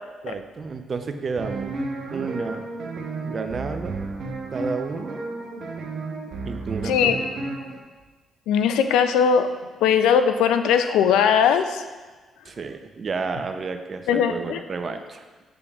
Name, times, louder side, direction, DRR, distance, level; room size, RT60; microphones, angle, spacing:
voice 1, 0.2-1.7 2.1-2.6 3.2-4.1 4.5-5.2 6.4-7.3 12.4-15.2, right 4 dB, 50° right, 7 dB, 0.5 m, -31 dB
sound 1, 1.4-7.8, right 3 dB, 65° right, 0.9 m, -32 dB
voice 2, 8.5-9.5 9.8-11.8 14.1-14.6, left 7 dB, 85° left, 9 dB, 0.3 m, -19 dB
8.4 x 5.1 x 2.4 m, 1.3 s
supercardioid pair, 65°, 0 cm